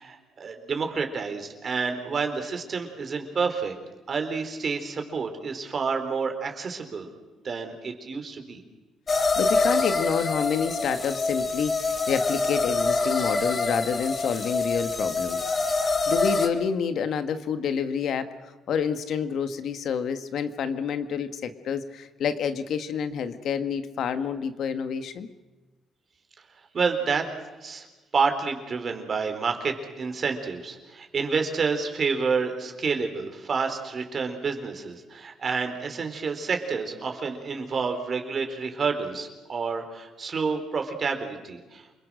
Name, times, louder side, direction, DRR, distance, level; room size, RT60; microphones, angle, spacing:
voice 1, 0.0-3.7 4.1-7.1 7.4-8.6 26.7-27.3 27.6-27.9 28.1-41.9, right 5 dB, 45° right, 5 dB, 4.3 m, -29 dB
voice 2, 9.1-15.5 16.1-25.3, left 7 dB, 70° left, 10 dB, 1.6 m, -28 dB
sound 1, 9.1-16.5, left 3 dB, 35° left, 2.3 m, -25 dB
28.5 x 21.5 x 6.5 m, 1.2 s
cardioid pair, 90°, 0 cm